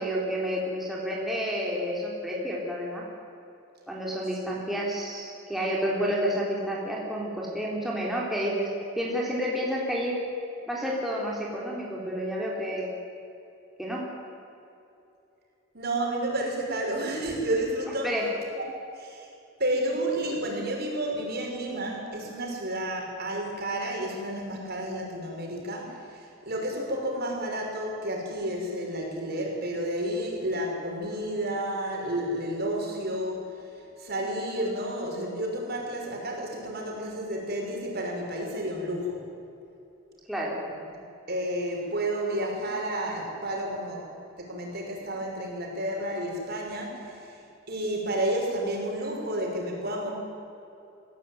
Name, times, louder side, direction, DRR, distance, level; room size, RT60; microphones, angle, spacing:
voice 1, 0.0-3.0 3.9-8.7 9.0-10.2 10.7-12.9 13.8-14.0 18.0-18.3 40.3-40.6, equal, ahead, -4 dB, 3.8 m, -30 dB
voice 2, 15.7-18.1 18.5-18.6 19.0-19.3 19.6-33.7 34.0-39.2 41.3-44.1 44.4-47.4 47.7-50.1, right 1 dB, 50° right, -1 dB, 6.0 m, -31 dB
24.0 x 16.5 x 9.4 m, 2.8 s
head